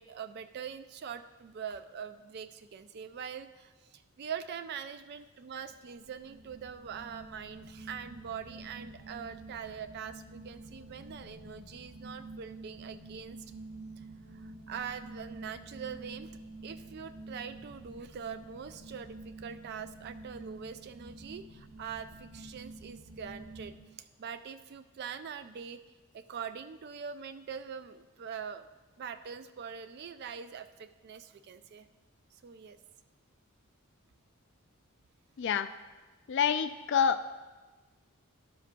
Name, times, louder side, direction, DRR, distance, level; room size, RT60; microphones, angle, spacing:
voice 1, 0.0-13.4 14.0-14.1 14.3-16.3 16.6-25.8 26.1-28.7 29.0-31.9 32.3-32.8, right 7 dB, 45° right, 12 dB, 0.3 m, -43 dB
sound 1, 5.6-23.8, right 2 dB, 85° right, 1.2 m, -48 dB
voice 2, 35.4-35.7 36.3-37.4, left 7 dB, 55° left, 11 dB, 0.3 m, -28 dB
11.5 x 7.5 x 2.2 m, 1.3 s
head